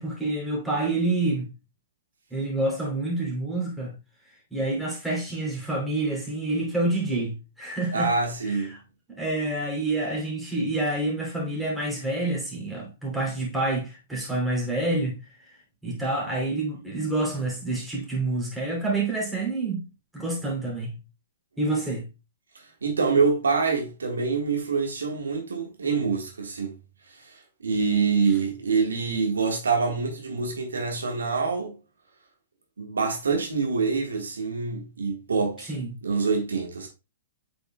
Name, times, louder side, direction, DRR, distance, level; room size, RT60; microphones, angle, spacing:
voice 1, 0.0-1.5 2.3-3.9 4.5-8.1 8.4-8.8 9.2-15.2 15.8-19.9 20.1-21.0 21.6-22.1 35.7-35.9, right 2 dB, ahead, 2.7 m, -28 dB
voice 2, 7.9-8.7 22.8-26.7 27.6-31.8 32.8-35.7 36.0-36.9, right 4 dB, 75° right, 1.5 m, -25 dB
8.1 x 5.2 x 2.2 m
figure-of-eight pair, 115°, 0 cm